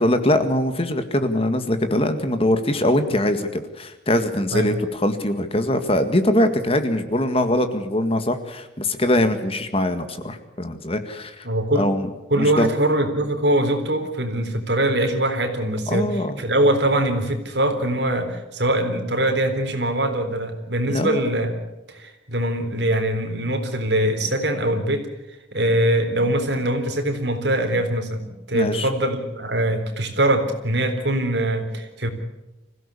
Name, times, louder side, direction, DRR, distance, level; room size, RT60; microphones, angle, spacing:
voice 1, 0.0-11.5 11.8-12.1 12.3-12.7 15.9-16.4 20.9-21.2 28.5-28.9, left 1 dB, 30° left, 8 dB, 1.9 m, -22 dB
voice 2, 11.4-11.9 12.3-21.5 21.9-25.1 25.5-32.1, right 1 dB, 65° right, 6 dB, 3.8 m, -22 dB
25.5 x 16.0 x 8.5 m, 1.0 s
head